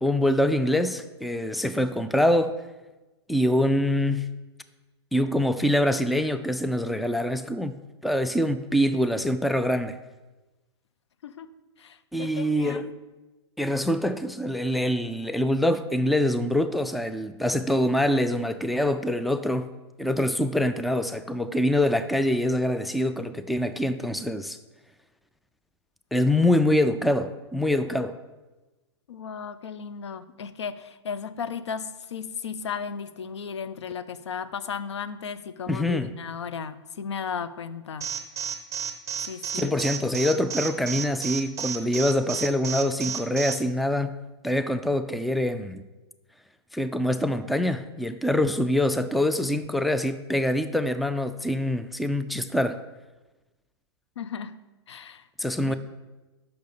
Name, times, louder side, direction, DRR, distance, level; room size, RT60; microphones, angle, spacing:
voice 1, 0.0-2.5 3.3-4.2 5.1-7.7 8.0-10.0 12.1-12.9 13.6-19.7 20.0-24.6 26.1-28.2 35.7-36.1 39.5-44.1 44.4-45.8 46.7-52.8 55.4-55.7, left 1 dB, ahead, 11 dB, 0.3 m, -25 dB
voice 2, 11.8-12.9 29.1-38.1 39.2-39.7 54.2-54.6 54.9-55.3 55.6-55.8, left 6 dB, 80° left, 13 dB, 0.6 m, -35 dB
Alarm, 38.0-43.5, right 8 dB, 20° right, 0.9 m, -31 dB
6.5 x 5.8 x 6.7 m, 1.1 s
hypercardioid pair, 115°, 14 cm